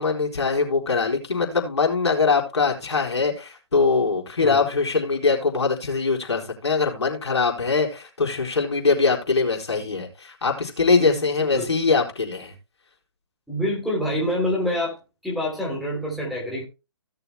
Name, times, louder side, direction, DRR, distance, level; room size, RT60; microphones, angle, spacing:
voice 1, 0.0-12.5, left 4 dB, 70° left, 4.4 m, -22 dB
voice 2, 13.5-15.0 15.2-16.6, left 1 dB, ahead, 3.2 m, -26 dB
17.0 x 6.9 x 2.2 m
figure-of-eight pair, 140°, 15 cm